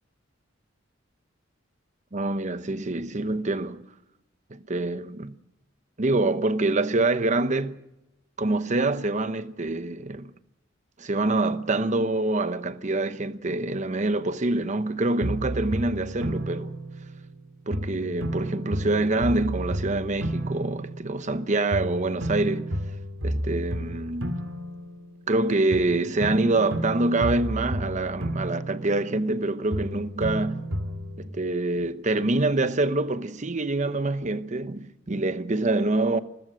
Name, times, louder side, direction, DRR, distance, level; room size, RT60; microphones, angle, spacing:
voice 1, 2.1-3.8 4.5-5.4 6.0-7.8 8.4-10.3 11.0-16.7 17.7-22.8 23.2-24.4 25.3-30.6 31.2-36.2, right 2 dB, 35° right, 0.9 m, -26 dB
sound 1, 15.2-17.4 17.7-21.4 21.7-25.4 25.7-29.4 29.7-31.3, right 1 dB, 90° right, 2.7 m, -32 dB
29.0 x 14.0 x 6.3 m
head